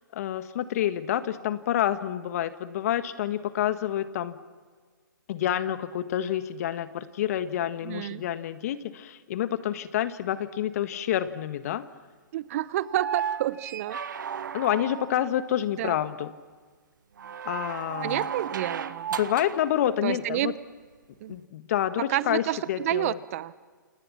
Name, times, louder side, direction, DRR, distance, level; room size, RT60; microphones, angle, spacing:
voice 1, 0.1-4.4 5.3-11.8 14.5-16.3 17.4-18.2 19.2-20.5 21.3-22.4 22.7-23.2, left 11 dB, 45° left, 11 dB, 1.6 m, -28 dB
voice 2, 7.8-8.2 12.3-14.0 15.8-16.0 18.0-19.1 20.0-20.5 21.2-21.3 22.1-23.5, right 13 dB, 45° right, 17 dB, 0.9 m, -29 dB
sound 1, 12.8-15.3 17.2-19.7 21.3-21.4, right 7 dB, 65° right, 1.3 m, -34 dB
29.5 x 28.5 x 6.0 m, 1.5 s
figure-of-eight pair, 125°, 11 cm